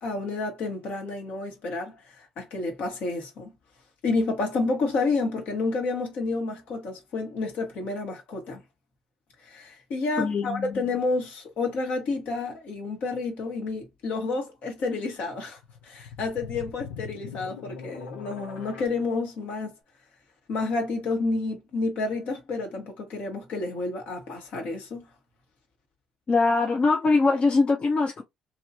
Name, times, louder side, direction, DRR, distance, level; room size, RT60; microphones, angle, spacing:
voice 1, 0.0-3.5 4.0-8.6 9.4-15.6 15.8-19.7 20.5-25.0, left 3 dB, 65° left, 1.5 m, -30 dB
voice 2, 10.2-10.8 26.3-28.2, left 3 dB, 40° left, 0.8 m, -22 dB
sound 1, 15.6-18.9, left 6 dB, 80° left, 0.8 m, -41 dB
2.9 x 2.9 x 2.8 m
hypercardioid pair, 45°, 3 cm